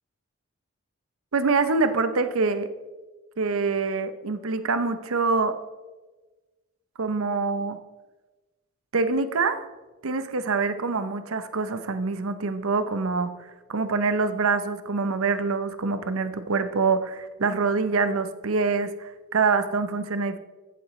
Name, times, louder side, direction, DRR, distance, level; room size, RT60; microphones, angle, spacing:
voice 1, 1.3-2.7 3.4-5.6 7.0-7.8 8.9-9.6 10.0-13.3 13.7-20.4, right 4 dB, 75° right, 10 dB, 0.7 m, -25 dB
14.5 x 7.6 x 3.1 m, 1.2 s
head